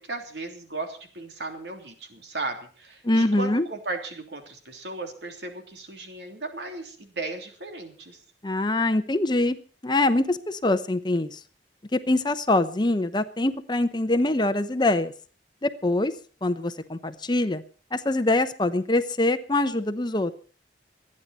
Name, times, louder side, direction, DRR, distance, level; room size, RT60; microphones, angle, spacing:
voice 1, 0.0-8.2, right 3 dB, 75° right, 4 dB, 3.1 m, -36 dB
voice 2, 3.0-3.6 8.4-9.6 9.8-11.4 11.9-15.1 15.6-16.1 16.4-17.6 17.9-20.3, left 2 dB, 25° left, 11 dB, 0.8 m, -24 dB
27.0 x 9.8 x 4.2 m, 0.40 s
head